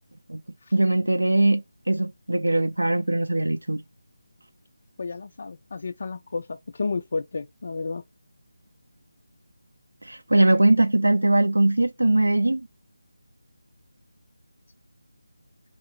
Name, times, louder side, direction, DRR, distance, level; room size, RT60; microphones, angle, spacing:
voice 1, 0.7-3.8 10.0-12.7, right 2 dB, 80° right, 0.4 m, -21 dB
voice 2, 5.0-8.0, left 4 dB, 45° left, 0.3 m, -32 dB
3.6 x 3.0 x 3.3 m
figure-of-eight pair, 160°, 0 cm